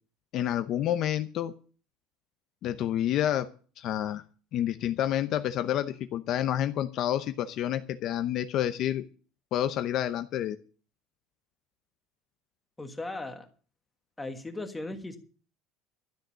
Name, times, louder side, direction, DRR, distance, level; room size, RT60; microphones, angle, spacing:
voice 1, 0.3-1.5 2.6-3.5 3.8-4.2 4.5-9.0 9.5-10.6, left 11 dB, 40° left, 9 dB, 0.7 m, -29 dB
voice 2, 12.8-13.4 14.2-15.2, left 2 dB, 5° left, 5 dB, 1.5 m, -37 dB
13.0 x 6.6 x 9.3 m, 0.40 s
cardioid pair, 175°, 0 cm